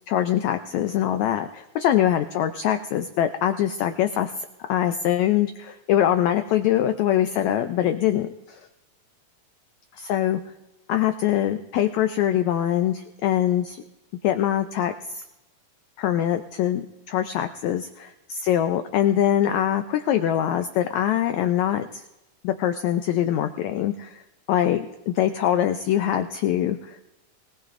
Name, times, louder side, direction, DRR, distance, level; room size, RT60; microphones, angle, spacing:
voice 1, 0.1-8.7 10.0-10.4 10.9-13.8 14.2-15.2 16.0-22.0 22.4-24.2 24.5-27.0, left 11 dB, 85° left, 8 dB, 1.6 m, -23 dB
25.0 x 18.5 x 2.6 m, 0.97 s
omnidirectional pair, 3.9 m